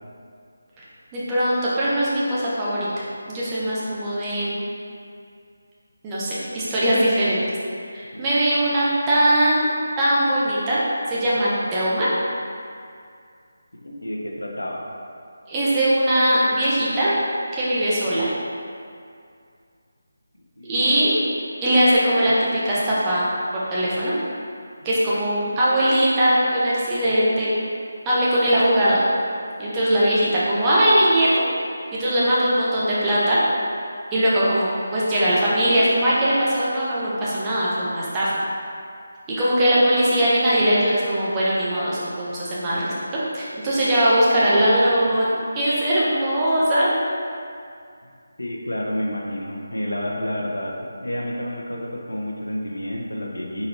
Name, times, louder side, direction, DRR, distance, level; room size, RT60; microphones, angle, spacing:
voice 1, 1.1-2.9 3.3-4.6 6.0-7.4 7.9-10.8 11.1-12.1 15.5-17.1 17.5-18.3 20.6-21.1 21.6-24.2 24.8-27.5 28.0-29.0 29.6-31.4 31.9-33.4 34.1-38.4 39.3-42.9 43.3-46.9, right 1 dB, 15° right, -8 dB, 0.8 m, -20 dB
voice 2, 13.7-14.8 20.6-21.1 48.4-53.7, equal, 85° left, -1 dB, 0.6 m, -30 dB
4.2 x 4.0 x 2.6 m, 2.3 s
figure-of-eight pair, 155°, 0 cm